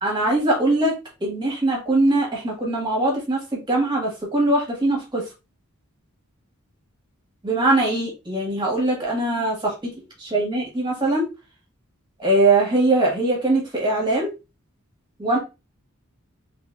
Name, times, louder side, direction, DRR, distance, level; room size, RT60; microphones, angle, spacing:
voice 1, 0.0-0.9 1.2-5.2 7.4-9.7 10.3-11.3 12.2-14.3 15.2-15.4, right 2 dB, 20° right, -2 dB, 1.6 m, -21 dB
3.9 x 3.4 x 2.4 m, 0.27 s
head